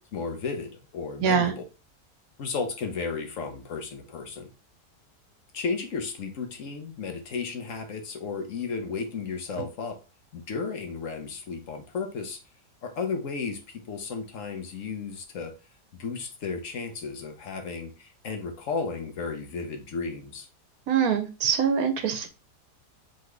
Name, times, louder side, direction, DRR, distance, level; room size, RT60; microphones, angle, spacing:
voice 1, 0.1-1.6 2.4-4.5 5.5-10.0 10.3-12.4 12.8-15.5 16.0-20.5, left 4 dB, 55° left, 1.1 m, -34 dB
voice 2, 1.2-1.5 20.9-22.3, right 7 dB, 65° right, 1.1 m, -24 dB
4.0 x 3.3 x 3.2 m
omnidirectional pair, 1.8 m